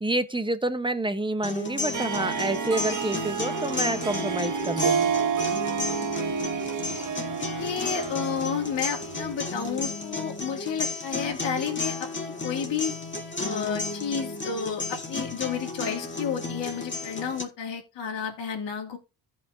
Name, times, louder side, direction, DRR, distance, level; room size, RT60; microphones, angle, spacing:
voice 1, 0.0-5.1, right 2 dB, 10° right, 0.9 m, -28 dB
sound 1, 1.4-17.4, left 3 dB, 25° left, 1.9 m, -33 dB
Harp, 1.9-9.6, right 7 dB, 40° right, 1.1 m, -30 dB
voice 2, 7.3-12.9 13.4-19.0, left 7 dB, 65° left, 2.5 m, -31 dB
15.0 x 5.6 x 2.6 m
cardioid pair, 75°, 46 cm